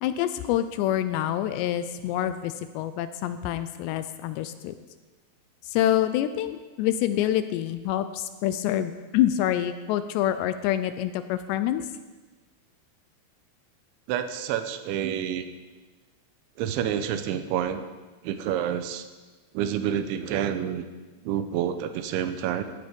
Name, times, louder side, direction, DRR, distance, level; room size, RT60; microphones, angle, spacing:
voice 1, 0.0-4.8 5.6-11.9, left 12 dB, 80° left, 11 dB, 2.6 m, -26 dB
voice 2, 14.1-15.5 16.6-17.8 18.2-19.1 19.5-20.9 21.2-22.6, right 9 dB, 80° right, 10 dB, 3.2 m, -28 dB
18.5 x 14.0 x 5.3 m, 1.3 s
omnidirectional pair, 5.5 m